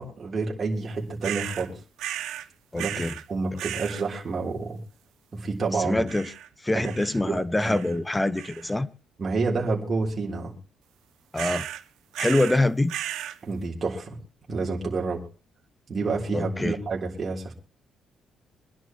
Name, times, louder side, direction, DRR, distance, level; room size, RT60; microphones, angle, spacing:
voice 1, 0.0-1.7 2.7-4.8 5.3-6.0 6.7-6.9 7.2-7.8 9.2-10.5 13.4-14.2 14.5-15.3 15.9-17.5, right 3 dB, 30° right, 3.5 m, -29 dB
sound 1, 1.2-1.7 2.0-2.5 2.8-3.2 3.6-4.0 6.1-6.5 6.8-7.2 7.6-8.0 8.4-8.8 11.4-11.8 12.1-12.6 12.9-13.4, right 12 dB, 85° right, 0.8 m, -34 dB
voice 2, 2.7-3.1 5.8-6.3 6.6-8.9 11.3-11.7 12.2-12.9 16.3-16.8, left 2 dB, 10° left, 0.8 m, -25 dB
24.5 x 11.0 x 3.0 m
cardioid pair, 140°, 0 cm